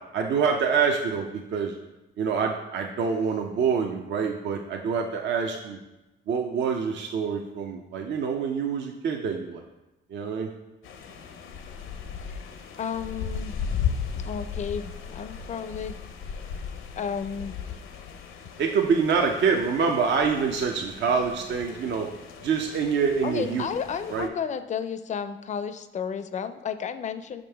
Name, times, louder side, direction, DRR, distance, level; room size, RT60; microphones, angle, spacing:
voice 1, 0.1-1.7 2.2-5.8 6.3-9.6 10.1-10.5 18.6-22.1 22.4-23.7 24.1-24.3, right 6 dB, 65° right, 2 dB, 0.6 m, -26 dB
sound 1, 10.8-24.3, left 7 dB, 80° left, 0.6 m, -36 dB
voice 2, 12.8-13.6 14.3-16.0 17.0-17.5 23.2-27.4, left 7 dB, 35° left, 11 dB, 0.4 m, -32 dB
5.5 x 5.2 x 3.4 m, 1.0 s
cardioid pair, 90°, 20 cm